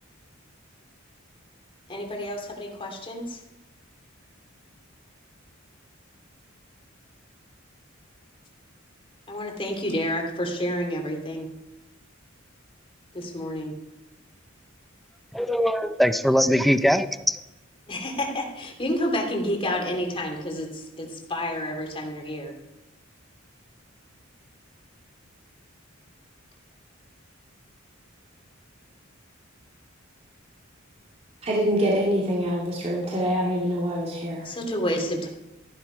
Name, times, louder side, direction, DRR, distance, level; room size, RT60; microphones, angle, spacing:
voice 1, 1.9-3.4 9.3-11.5 13.1-13.7 17.9-22.5 34.4-35.3, equal, 25° left, 1 dB, 2.6 m, -29 dB
voice 2, 15.3-17.4, equal, ahead, 11 dB, 0.6 m, -21 dB
voice 3, 31.4-34.5, equal, 30° right, -4 dB, 2.5 m, -25 dB
14.0 x 12.5 x 5.1 m, 0.94 s
head